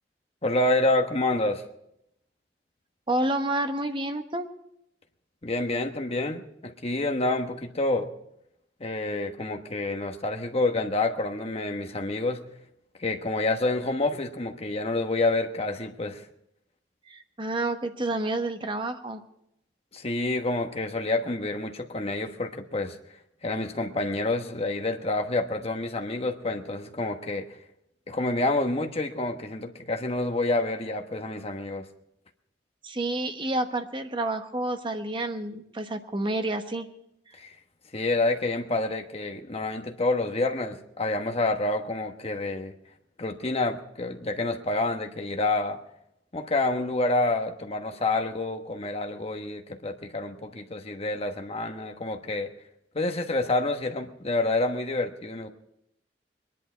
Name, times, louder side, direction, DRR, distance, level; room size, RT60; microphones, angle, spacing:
voice 1, 0.4-1.6 5.4-8.1 8.8-12.4 13.0-16.3 19.9-23.0 23.4-27.5 28.1-31.8 37.4-37.5 37.9-42.7 43.2-45.8 46.3-52.5 52.9-55.5, left 2 dB, 35° left, 5 dB, 1.2 m, -28 dB
voice 2, 3.1-4.5 17.1-19.2 32.8-36.9, right 2 dB, 30° right, 6 dB, 1.1 m, -29 dB
22.5 x 11.0 x 4.5 m, 0.78 s
head